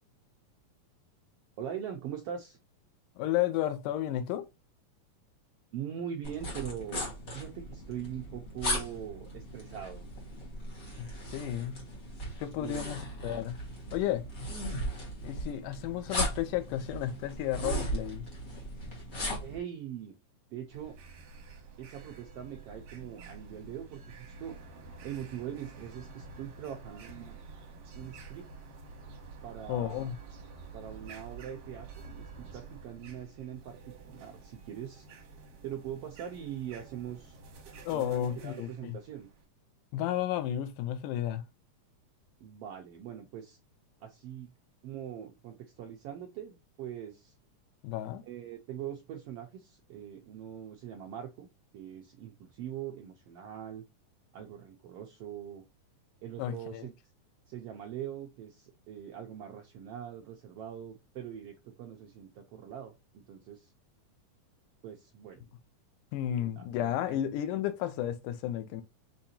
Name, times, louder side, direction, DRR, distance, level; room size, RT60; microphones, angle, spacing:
voice 1, 1.6-2.6 5.7-7.0 7.3-10.1 12.6-12.9 19.4-20.2 20.5-21.0 21.8-24.6 25.0-27.4 27.9-28.5 29.4-30.1 30.7-35.0 35.6-37.4 37.9-39.3 42.4-43.6 44.0-44.5 44.8-47.3 48.2-51.5 51.7-53.8 54.3-55.6 56.2-56.9 57.5-63.7 64.8-65.5 66.3-66.7 67.0-67.2, right 9 dB, 90° right, 1.3 m, -42 dB
voice 2, 3.2-4.5 11.0-11.8 12.4-13.6 13.9-14.2 15.2-18.3 29.7-30.2 37.8-39.0 39.9-41.4 47.8-48.2 56.4-56.9 66.1-68.8, left 12 dB, 90° left, 2.2 m, -32 dB
sound 1, 6.2-19.6, equal, 35° left, 1.5 m, -37 dB
sound 2, 20.7-39.4, right 4 dB, 65° right, 2.4 m, -49 dB
6.6 x 2.9 x 2.7 m
omnidirectional pair, 3.6 m